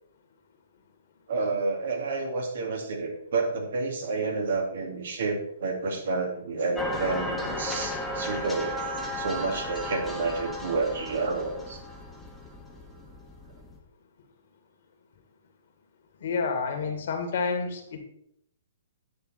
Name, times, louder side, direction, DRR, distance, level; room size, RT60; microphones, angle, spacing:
voice 1, 1.3-8.8 9.1-11.8, right 3 dB, 70° right, 3 dB, 2.2 m, -29 dB
sound 1, 6.7-13.8, left 1 dB, 10° left, 1.3 m, -35 dB
voice 2, 16.2-18.0, left 4 dB, 65° left, 4 dB, 2.0 m, -29 dB
9.5 x 6.6 x 4.2 m, 0.72 s
hypercardioid pair, 130°, 0 cm